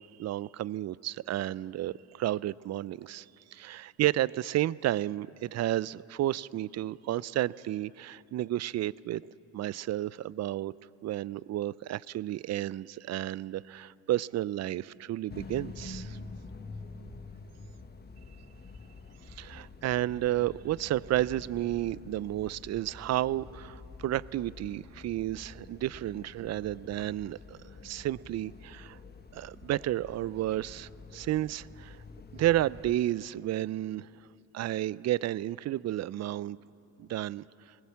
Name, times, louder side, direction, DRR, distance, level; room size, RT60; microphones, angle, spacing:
voice 1, 0.0-3.2 3.5-9.2 9.5-10.7 11.0-16.2 19.4-27.6 27.8-29.0 29.3-32.0 32.3-34.1 34.5-36.6 37.0-37.4, right 14 dB, 45° right, 21 dB, 0.4 m, -32 dB
sound 1, 15.3-33.0, left 3 dB, 25° left, 1.3 m, -47 dB
19.5 x 19.0 x 7.5 m, 2.8 s
supercardioid pair, 75°, 38 cm